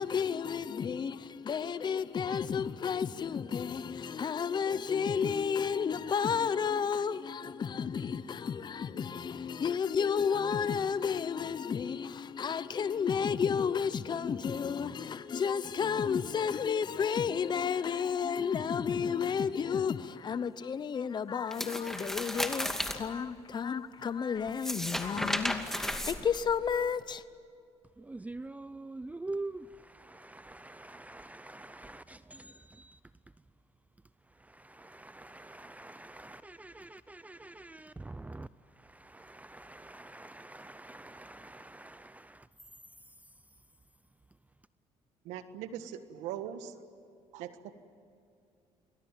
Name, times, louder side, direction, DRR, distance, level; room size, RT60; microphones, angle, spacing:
voice 1, 0.0-27.2, left 6 dB, 40° left, 0.9 m, -32 dB
sound 1, 21.5-23.0 24.5-26.7, left 1 dB, 5° left, 2.5 m, -34 dB
voice 2, 28.0-33.0 34.4-38.5 38.7-42.5, right 2 dB, 10° right, 0.6 m, -45 dB
voice 3, 45.2-46.7 47.3-47.7, right 10 dB, 90° right, 1.6 m, -40 dB
28.5 x 22.0 x 9.2 m
cardioid pair, 90°, 12 cm